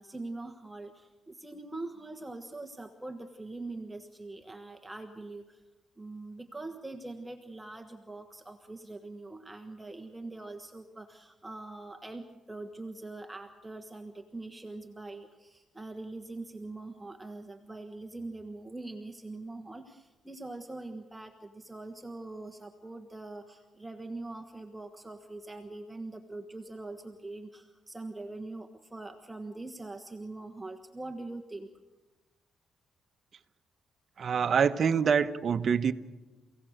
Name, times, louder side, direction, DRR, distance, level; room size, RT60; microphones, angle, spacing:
voice 1, 0.0-5.6 6.0-31.7, right 2 dB, 10° right, 5 dB, 1.3 m, -43 dB
voice 2, 34.2-35.9, right 6 dB, 50° right, 10 dB, 1.0 m, -25 dB
30.0 x 17.0 x 6.6 m, 1.2 s
cardioid pair, 90°, 0 cm